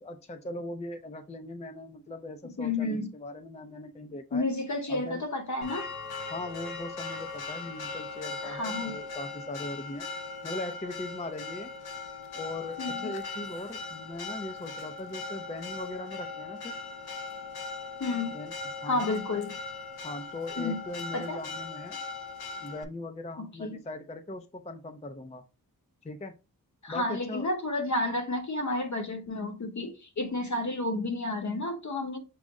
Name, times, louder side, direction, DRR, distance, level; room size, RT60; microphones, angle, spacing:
voice 1, 0.0-4.4 4.9-5.2 6.3-10.0 10.4-11.7 12.3-12.8 13.0-16.7 18.3-18.5 18.8-19.2 20.0-22.0 22.6-25.4 26.0-26.3 26.9-27.5, left 2 dB, 20° left, 0.5 m, -39 dB
voice 2, 2.6-3.1 4.3-5.9 8.4-8.9 12.8-13.1 18.0-18.3 18.8-19.5 20.6-20.8 21.1-21.4 23.6-23.8 26.8-32.2, left 2 dB, 50° left, 0.9 m, -31 dB
Church bell, 5.6-22.8, left 4 dB, 80° left, 0.7 m, -39 dB
6.2 x 2.1 x 3.6 m
wide cardioid pair, 90°, 37 cm